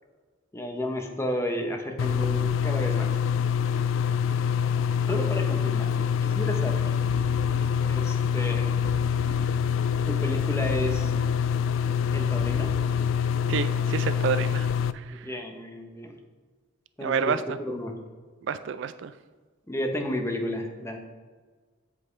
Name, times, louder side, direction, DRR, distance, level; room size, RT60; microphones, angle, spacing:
voice 1, 0.5-3.1 5.1-6.9 7.9-8.8 10.1-11.1 12.1-12.7 15.1-16.2 17.0-18.0 19.7-21.0, left 1 dB, 15° left, 3 dB, 0.9 m, -32 dB
sound 1, 2.0-14.9, left 7 dB, 70° left, 0.3 m, -25 dB
sound 2, 6.5-13.6, left 1 dB, 50° left, 1.3 m, -40 dB
voice 2, 13.5-14.7 14.9-15.3 17.0-17.6 18.4-19.1, right 6 dB, 65° right, 12 dB, 0.4 m, -29 dB
8.0 x 7.6 x 3.2 m, 1.4 s
head